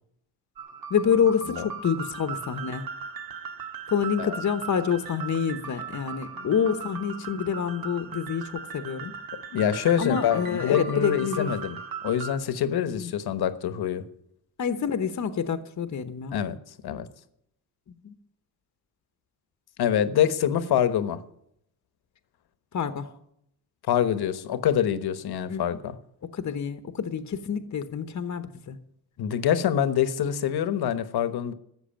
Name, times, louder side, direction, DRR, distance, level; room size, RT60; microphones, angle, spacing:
sound 1, 0.6-12.3, right 6 dB, 65° right, 1.7 m, -38 dB
voice 1, 0.9-2.9 3.9-9.1 10.0-11.5 13.0-13.1 14.6-16.4 18.0-18.1 22.7-23.1 25.4-25.6 26.2-28.8, left 7 dB, 45° left, 9 dB, 1.1 m, -27 dB
voice 2, 9.5-11.8 12.0-14.0 16.3-16.6 16.8-17.1 19.8-21.2 23.9-25.9 29.2-31.5, left 9 dB, 75° left, 12 dB, 1.2 m, -25 dB
13.0 x 7.9 x 9.0 m, 0.74 s
cardioid pair, 95°, 38 cm